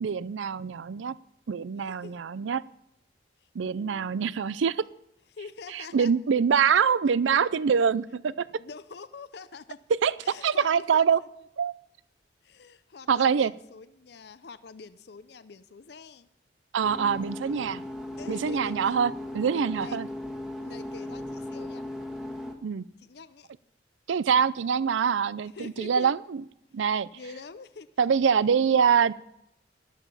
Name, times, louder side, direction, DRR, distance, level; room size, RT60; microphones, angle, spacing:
voice 1, 0.0-1.2 1.5-2.6 3.6-4.8 5.7-8.5 10.0-10.2 10.4-11.2 11.6-11.7 13.1-13.5 16.7-17.8 18.3-20.1 22.6-22.8 24.1-26.4 26.7-27.1 28.0-29.1, right 6 dB, 80° right, 19 dB, 0.4 m, -24 dB
voice 2, 3.7-4.1 5.3-6.1 8.3-9.8 10.2-11.3 12.4-16.3 18.2-19.0 19.7-20.0 20.6-21.9 23.0-23.5 25.5-26.1 27.1-27.9 28.4-28.7, left 4 dB, 60° left, 14 dB, 0.5 m, -45 dB
sound 1, 16.8-22.5, left 1 dB, ahead, 1.4 m, -37 dB
12.0 x 12.0 x 5.5 m, 0.81 s
head